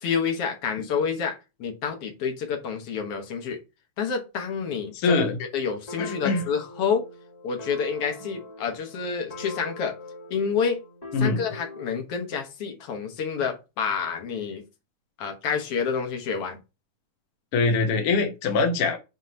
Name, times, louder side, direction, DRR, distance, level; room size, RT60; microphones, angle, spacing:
voice 1, 0.0-3.6 4.0-5.3 5.5-7.1 7.4-9.9 10.3-10.8 11.2-14.6 15.2-16.6, left 6 dB, 55° left, 1.7 m, -28 dB
voice 2, 4.9-5.4 6.0-6.4 11.1-11.4 17.5-19.0, left 3 dB, 85° left, 1.2 m, -23 dB
sound 1, 5.9-12.1, left 1 dB, 25° left, 0.9 m, -42 dB
8.0 x 3.0 x 5.3 m
omnidirectional pair, 4.1 m